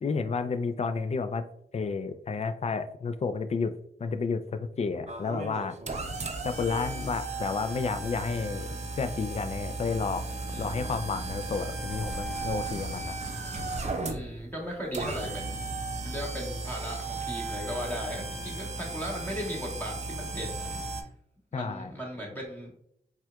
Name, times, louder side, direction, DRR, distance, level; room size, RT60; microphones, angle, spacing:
voice 1, 0.0-1.5 1.7-3.7 4.0-5.7 6.4-8.7 9.0-10.3 10.6-13.2 21.5-21.9, left 4 dB, 40° left, 10 dB, 0.4 m, -31 dB
sound 1, 5.1-21.0, right 3 dB, 40° right, 0.6 m, -35 dB
voice 2, 10.5-10.9 14.1-15.7 16.0-20.9 21.5-22.8, equal, 10° left, -3 dB, 1.2 m, -37 dB
4.3 x 2.4 x 2.2 m, 0.69 s
cardioid pair, 45°, 18 cm